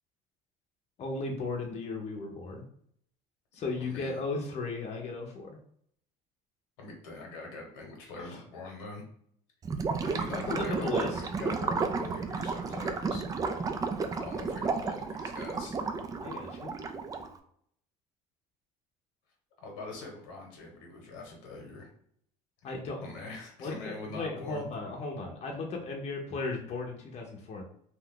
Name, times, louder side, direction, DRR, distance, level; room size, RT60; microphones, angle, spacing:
voice 1, 1.0-2.6 3.5-5.5 8.2-8.4 10.3-11.2 16.2-16.7 22.6-23.0 23.6-27.6, left 3 dB, 40° left, 0 dB, 0.7 m, -36 dB
voice 2, 3.8-4.2 6.8-9.0 10.0-13.2 14.2-15.8 19.6-21.9 23.0-24.6, left 2 dB, 85° left, 1 dB, 1.0 m, -43 dB
Gurgling / Liquid, 9.6-17.4, right 4 dB, 20° right, 0.3 m, -32 dB
2.5 x 2.3 x 3.5 m, 0.67 s
supercardioid pair, 105°, 16 cm